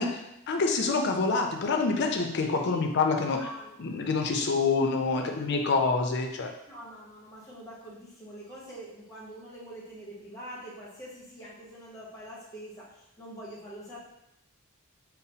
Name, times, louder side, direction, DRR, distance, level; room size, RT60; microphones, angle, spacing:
voice 1, 0.0-3.5 3.8-6.5, left 4 dB, 55° left, 3 dB, 0.5 m, -27 dB
voice 2, 3.3-3.7 4.4-4.6 5.1-5.3 6.7-14.0, equal, 15° left, -7 dB, 1.0 m, -44 dB
5.6 x 2.0 x 2.8 m, 0.85 s
head